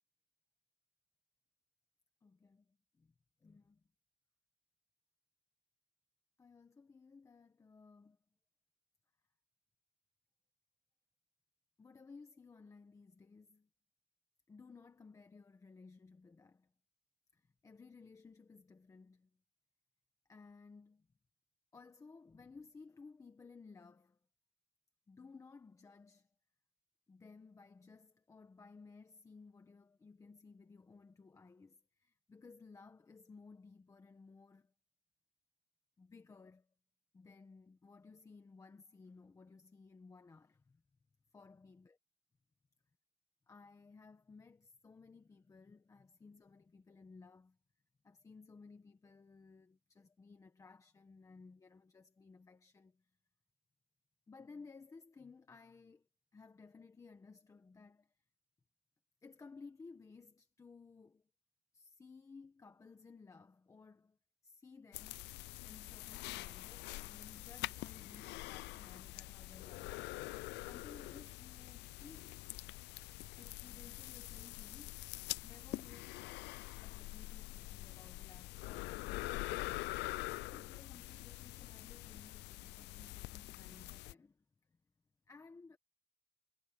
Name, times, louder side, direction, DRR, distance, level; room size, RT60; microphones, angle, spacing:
voice 1, 2.2-3.1 3.4-3.9 6.4-8.2 11.8-13.7 14.5-16.7 17.3-19.3 20.3-21.1 21.7-24.2 25.1-26.3 27.1-34.7 36.0-36.7 37.1-40.8 41.3-42.0 43.5-47.6 48.0-53.1 54.3-56.1 56.3-58.1 59.2-61.3 61.7-64.2 64.4-65.3 65.6-70.2 70.6-72.3 73.4-75.0 75.4-76.3 76.8-79.9 80.3-84.8 85.3-85.8, left 4 dB, 15° left, 1.6 m, -58 dB
sound 1, 64.9-84.1, left 20 dB, 85° left, 0.4 m, -45 dB
cardioid pair, 165°, 17 cm